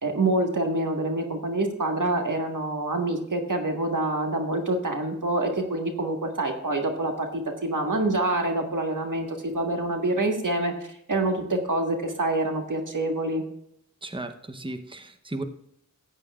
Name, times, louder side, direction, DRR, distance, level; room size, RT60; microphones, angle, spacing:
voice 1, 0.0-13.4, right 2 dB, 85° right, 3 dB, 1.7 m, -26 dB
voice 2, 14.0-15.4, right 2 dB, 15° right, 8 dB, 0.9 m, -35 dB
13.5 x 9.1 x 2.5 m, 0.73 s
wide cardioid pair, 50°, 31 cm